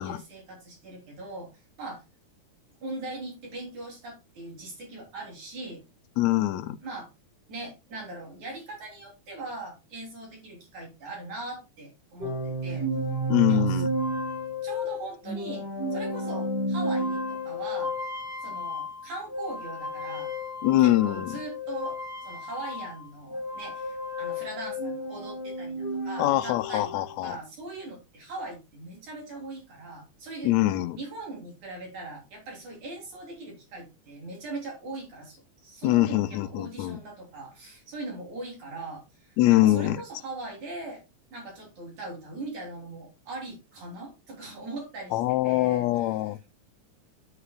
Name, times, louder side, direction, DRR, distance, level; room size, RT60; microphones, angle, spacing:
voice 1, 0.0-2.0 2.8-5.8 6.8-7.1 7.5-12.9 13.4-13.8 14.6-17.9 18.4-20.3 20.8-30.5 30.9-41.0 41.3-46.1, right 2 dB, 65° right, 4.7 m, -40 dB
voice 2, 6.2-6.8 13.3-13.9 20.6-21.4 26.2-27.4 30.4-31.0 35.8-37.0 39.4-40.0 45.1-46.4, left 16 dB, 80° left, 1.7 m, -23 dB
sound 1, 12.2-23.0 23.3-27.2, equal, 20° right, 3.6 m, -32 dB
9.8 x 9.0 x 2.4 m
omnidirectional pair, 3.7 m